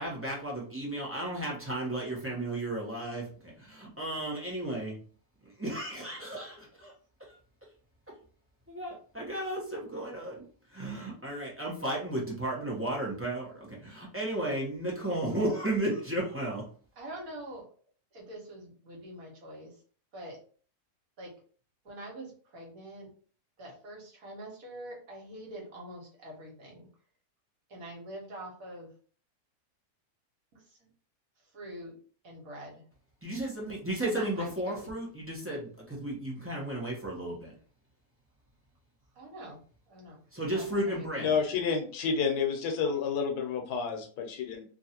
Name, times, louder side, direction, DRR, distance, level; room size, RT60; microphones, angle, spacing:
voice 1, 0.0-5.0 5.4-6.9 8.7-10.4 10.7-16.6 33.2-37.5 40.3-41.3, right 1 dB, 10° right, -4 dB, 0.6 m, -34 dB
voice 2, 17.0-17.6 18.1-19.7 20.1-20.4 21.2-21.3 21.8-23.1 23.6-26.9 27.7-28.9 30.5-30.9 31.5-31.9 32.2-32.8 34.0-34.9 39.1-39.6 39.9-40.2 40.5-41.3, right 1 dB, 65° right, -2 dB, 1.5 m, -44 dB
voice 3, 41.2-44.6, left 5 dB, 90° left, 3 dB, 1.3 m, -30 dB
3.1 x 2.5 x 2.8 m, 0.43 s
omnidirectional pair, 1.6 m